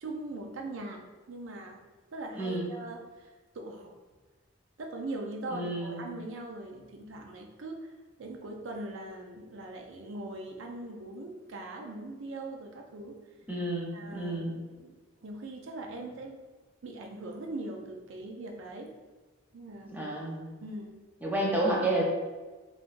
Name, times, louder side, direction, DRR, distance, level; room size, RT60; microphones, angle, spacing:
voice 1, 0.0-1.8 2.1-3.1 3.5-3.9 4.8-7.9 8.2-13.2 13.9-14.9 15.2-16.4 16.8-18.9 19.5-20.0 20.6-21.0, right 2 dB, 70° right, 2 dB, 0.5 m, -41 dB
voice 2, 2.3-2.7 5.5-6.0 13.5-14.5 19.9-20.5 21.2-22.0, right 1 dB, 10° right, -3 dB, 0.5 m, -30 dB
3.7 x 2.4 x 2.5 m, 1.3 s
head